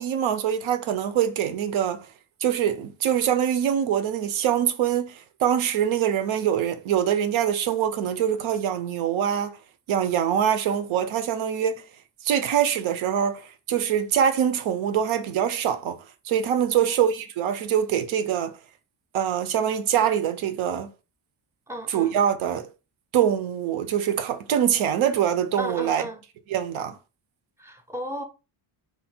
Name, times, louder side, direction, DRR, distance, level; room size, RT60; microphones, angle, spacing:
voice 1, 0.0-2.1 2.4-9.6 9.9-11.8 12.2-18.6 19.1-20.9 21.9-22.7 23.1-26.0 26.5-27.0, right 9 dB, 85° right, 0.7 m, -24 dB
voice 2, 16.7-17.1 21.7-22.1 25.6-26.2 27.6-28.2, equal, 5° right, 0.5 m, -35 dB
4.6 x 2.3 x 4.3 m
wide cardioid pair, 180°, 46 cm